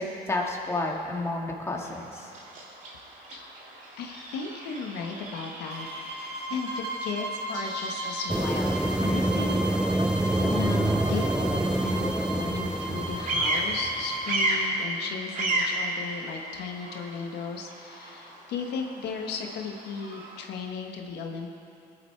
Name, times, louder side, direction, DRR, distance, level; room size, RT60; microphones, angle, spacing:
voice 1, 0.0-2.3 10.9-11.2, left 2 dB, 15° left, -1 dB, 2.2 m, -31 dB
Bird vocalization bird call bird song, 1.7-20.5, right 1 dB, 50° right, 3.1 m, -35 dB
voice 2, 4.0-9.6 10.3-21.5, left 5 dB, 80° left, 2 dB, 1.3 m, -36 dB
sound 1, 5.7-14.3, right 1 dB, 80° right, 2.2 m, -36 dB
sound 2, 8.3-14.2, right 1 dB, 5° right, 0.4 m, -27 dB
20.5 x 10.5 x 4.6 m, 2.7 s
cardioid pair, 110°, 17 cm